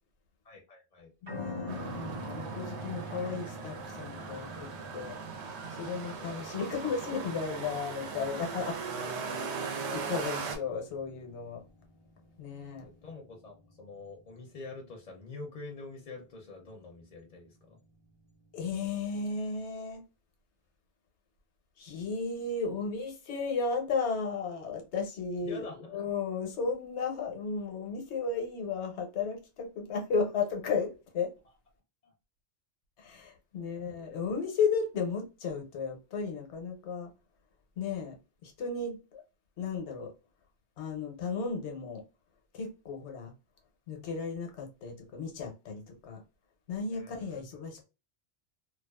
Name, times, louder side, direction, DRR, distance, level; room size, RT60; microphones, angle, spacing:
voice 1, 0.4-1.1 6.2-6.6 8.8-9.1 10.1-10.5 12.8-17.8 25.4-26.1 32.0-32.1 33.5-34.2 46.9-47.6, left 3 dB, 50° left, 0.6 m, -47 dB
voice 2, 1.2-5.1 5.8-8.8 9.3-9.6 9.9-11.6 12.4-12.9 18.5-20.0 21.8-25.6 25.9-31.3 33.0-37.1 37.8-38.1 38.4-39.2 39.6-40.1 40.8-42.0 42.5-43.3 43.9-46.2 46.7-47.9, left 5 dB, 80° left, 1.0 m, -34 dB
sound 1, 1.3-19.5, equal, 30° right, 0.6 m, -47 dB
sound 2, 1.7-10.6, right 5 dB, 80° right, 0.8 m, -39 dB
2.4 x 2.4 x 2.2 m
omnidirectional pair, 1.1 m